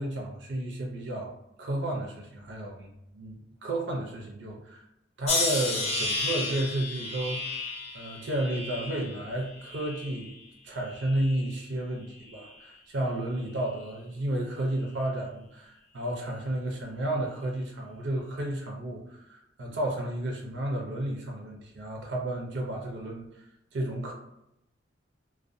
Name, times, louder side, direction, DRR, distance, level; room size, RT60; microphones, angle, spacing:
voice 1, 0.0-1.3 1.6-4.9 5.2-7.6 7.9-10.4 10.6-23.4 23.7-24.1, right 1 dB, 70° right, 0 dB, 0.5 m, -32 dB
sound 1, 5.3-10.4 10.9-11.6 12.3-12.6, left 3 dB, 35° left, 0.5 m, -33 dB
2.5 x 2.2 x 2.4 m, 0.85 s
head